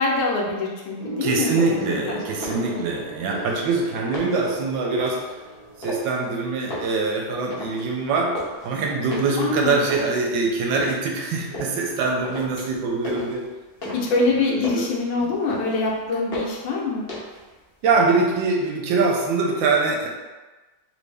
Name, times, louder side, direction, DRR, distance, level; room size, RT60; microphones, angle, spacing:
voice 1, 0.0-1.8 2.0-2.8 9.4-9.8 13.9-17.0, left 3 dB, 80° left, -2 dB, 1.5 m, -24 dB
Gong, 1.0-10.7 11.7-12.0, right 2 dB, 45° right, 0.6 m, -39 dB
voice 2, 1.2-5.3 5.8-13.4 13.8-14.0 14.5-14.8 15.2-15.3 17.8-20.1, right 3 dB, 75° right, 0 dB, 1.2 m, -23 dB
sound 1, 1.5-1.9 2.3-3.0 3.3-4.5 5.0-5.3 5.8-6.3 6.6-8.7 9.1-11.0 11.5-11.9 12.2-12.8 13.0-14.2 14.5-15.0 15.3-15.9 16.3-16.7 17.1-17.5 17.8-18.5, left 1 dB, 50° left, 0.7 m, -34 dB
3.3 x 2.6 x 3.3 m, 1.2 s
omnidirectional pair, 2.2 m